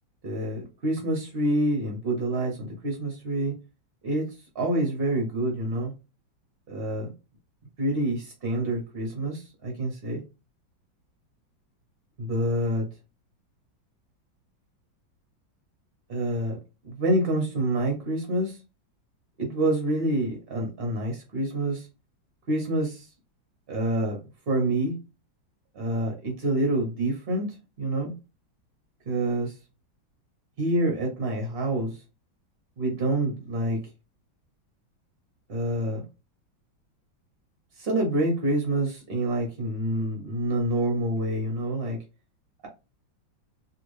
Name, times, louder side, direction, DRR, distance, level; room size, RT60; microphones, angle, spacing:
voice 1, 0.2-3.5 4.0-5.9 6.7-7.1 7.8-10.2 12.2-12.9 16.1-16.6 16.8-18.6 19.4-21.9 22.5-23.1 23.7-24.2 24.5-24.9 25.7-27.5 27.8-28.1 29.1-29.5 30.6-32.0 32.8-33.8 35.5-36.1 37.8-42.0, right 1 dB, 55° right, 0.6 m, -27 dB
3.5 x 2.5 x 3.1 m
omnidirectional pair, 2.1 m